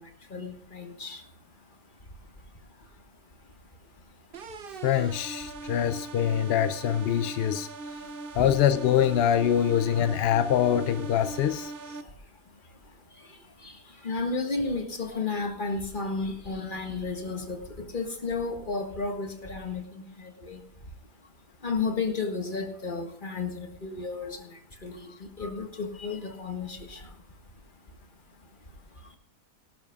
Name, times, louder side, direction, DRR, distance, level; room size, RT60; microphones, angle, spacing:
voice 1, 0.3-1.2 14.0-17.6 17.9-20.0 20.4-20.6 21.6-24.4 24.8-25.1 25.4-27.0, left 4 dB, 35° left, 4 dB, 1.8 m, -32 dB
sound 1, 4.3-12.0, right 3 dB, 45° right, 0.8 m, -40 dB
voice 2, 4.8-7.9 8.3-11.7, left 9 dB, 65° left, 12 dB, 0.6 m, -24 dB
18.0 x 12.0 x 2.5 m, 0.64 s
omnidirectional pair, 1.6 m